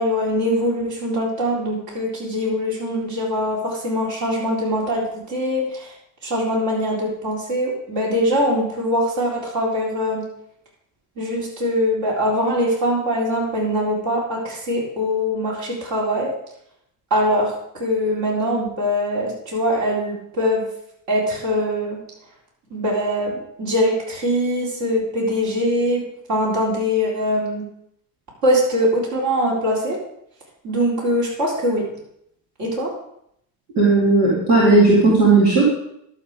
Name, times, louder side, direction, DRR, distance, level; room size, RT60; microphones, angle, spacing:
voice 1, 0.0-5.9 6.2-10.3 11.2-16.3 17.1-20.7 21.1-22.0 22.7-26.0 26.3-27.6 28.4-30.0 30.6-31.9 32.6-32.9, equal, 60° right, -4 dB, 4.2 m, -22 dB
voice 2, 33.8-35.6, right 3 dB, 90° right, -7 dB, 2.6 m, -15 dB
12.0 x 7.1 x 4.9 m, 0.74 s
hypercardioid pair, 60°, 49 cm